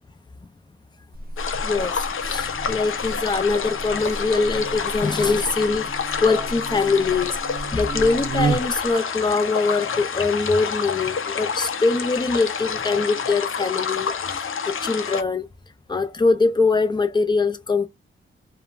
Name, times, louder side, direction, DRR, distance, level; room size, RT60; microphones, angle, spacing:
Buzz, 1.1-8.9, right 3 dB, 45° right, 0.5 m, -32 dB
sound 1, 1.4-15.2, left 6 dB, 75° left, 0.5 m, -28 dB
voice 1, 1.6-7.4 7.7-15.5 15.9-17.9, left 4 dB, 20° left, 0.4 m, -23 dB
3.2 x 2.1 x 2.3 m
wide cardioid pair, 135°, 21 cm